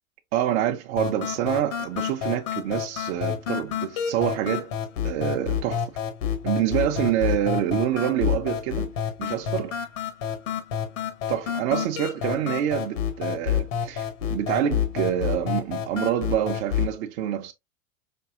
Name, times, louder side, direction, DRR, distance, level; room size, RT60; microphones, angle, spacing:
voice 1, 0.3-4.7 5.0-6.0 6.4-8.9 9.2-9.8 11.3-17.5, right 11 dB, 55° right, 0.7 m, -26 dB
sound 1, 1.0-17.0, left 9 dB, 65° left, 1.1 m, -29 dB
5.3 x 2.7 x 2.4 m
hypercardioid pair, 105°, 41 cm